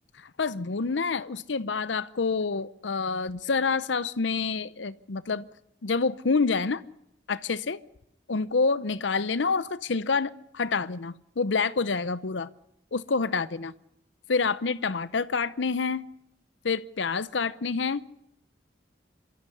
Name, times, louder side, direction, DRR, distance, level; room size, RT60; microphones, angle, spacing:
voice 1, 0.2-5.4 5.8-6.8 7.3-7.8 8.3-12.5 12.9-13.7 14.3-16.0 16.6-18.1, left 4 dB, 90° left, 0.8 m, -27 dB
27.5 x 13.5 x 9.9 m
head